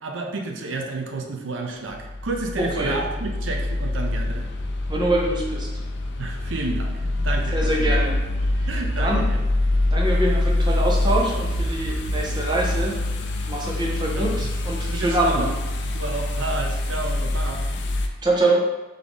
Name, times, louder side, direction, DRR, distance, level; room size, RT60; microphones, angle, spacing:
voice 1, 0.0-4.5 6.2-8.0 8.7-9.4 14.2-14.5 14.9-15.5 15.9-17.7, right 3 dB, 80° right, 2 dB, 0.6 m, -31 dB
sound 1, 1.9-18.1, left 1 dB, 60° left, 0.4 m, -25 dB
voice 2, 2.6-3.0 4.9-5.7 7.5-8.2 8.6-8.7 9.0-9.3 9.9-12.9 13.5-15.5 18.2-18.7, right 1 dB, 20° right, -2 dB, 0.6 m, -24 dB
3.9 x 3.5 x 3.5 m, 1.1 s
head